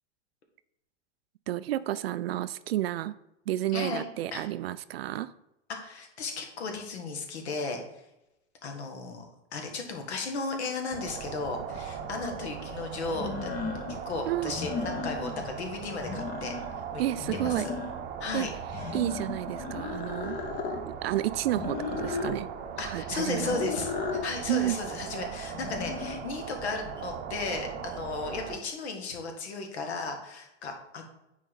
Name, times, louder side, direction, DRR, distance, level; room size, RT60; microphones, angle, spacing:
voice 1, 1.5-3.1 3.5-5.3 14.2-14.5 17.0-17.7 18.3-18.5 18.9-20.4 20.9-22.5 22.8-23.6 24.5-24.8, right 14 dB, 60° right, 15 dB, 0.5 m, -31 dB
voice 2, 3.7-4.1 4.3-4.4 5.7-7.8 8.6-9.2 9.5-13.5 14.1-16.5 16.9-17.0 17.3-17.7 18.2-19.0 22.8-23.9 24.2-31.0, left 4 dB, 65° left, 4 dB, 1.8 m, -35 dB
sound 1, 10.9-28.6, right 7 dB, 25° right, 0.9 m, -39 dB
sound 2, 11.7-11.8 13.1-14.0 14.5-15.5 15.9-16.8 17.2-18.1 18.7-20.8 21.6-22.4 23.2-24.3 25.5-26.2, left 5 dB, 25° left, 0.8 m, -35 dB
9.4 x 4.0 x 4.1 m, 0.88 s
hypercardioid pair, 105°, 35 cm